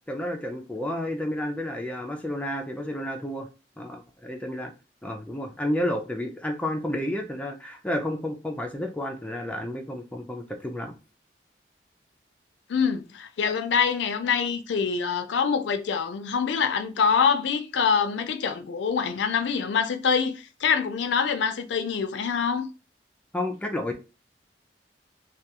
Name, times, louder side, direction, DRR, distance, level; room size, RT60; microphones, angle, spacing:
voice 1, 0.1-3.5 3.8-4.7 5.0-10.9 23.3-24.0, left 1 dB, 5° left, 0.3 m, -31 dB
voice 2, 12.7-22.7, left 6 dB, 80° left, 0.4 m, -25 dB
2.3 x 2.3 x 2.8 m
head